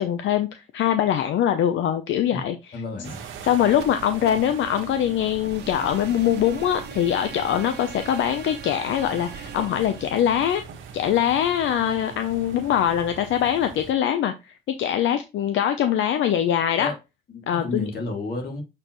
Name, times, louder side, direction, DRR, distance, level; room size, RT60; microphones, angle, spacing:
voice 1, 0.0-2.8 3.4-10.6 10.9-16.9 17.5-17.9, left 10 dB, 75° left, 0.7 m, -23 dB
voice 2, 2.7-3.2 16.8-16.9 17.3-18.6, left 2 dB, 50° left, 2.5 m, -31 dB
sound 1, 3.0-13.9, right 6 dB, 80° right, 1.4 m, -43 dB
sound 2, 3.7-11.6, right 6 dB, 55° right, 1.0 m, -41 dB
7.4 x 4.5 x 3.1 m
cardioid pair, 90°, 20 cm